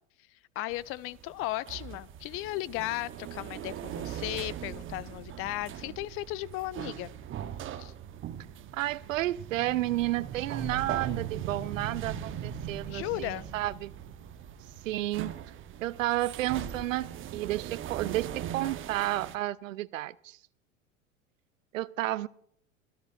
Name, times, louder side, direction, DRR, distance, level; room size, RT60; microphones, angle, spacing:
voice 1, 0.3-7.1 7.8-7.9 12.9-13.5, left 17 dB, 35° left, 21 dB, 0.5 m, -36 dB
sound 1, 0.7-19.4, right 9 dB, 30° right, 1.0 m, -40 dB
sound 2, 2.9-17.1, right 9 dB, 50° right, 1.3 m, -53 dB
voice 2, 8.7-13.9 14.8-15.3 15.8-20.4 21.7-22.3, right 15 dB, 65° right, 20 dB, 0.6 m, -31 dB
25.0 x 14.5 x 2.5 m, 0.70 s
figure-of-eight pair, 85°, 41 cm